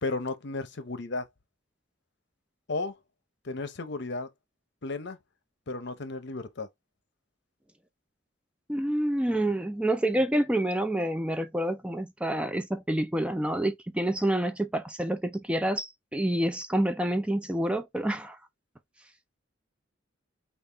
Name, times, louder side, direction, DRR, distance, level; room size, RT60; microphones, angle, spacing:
voice 1, 0.0-1.3 2.7-2.9 3.4-4.3 4.8-5.2 5.7-6.7, left 3 dB, 60° left, 0.8 m, -33 dB
voice 2, 8.7-18.4, right 1 dB, 5° right, 0.4 m, -28 dB
5.3 x 2.4 x 3.4 m
head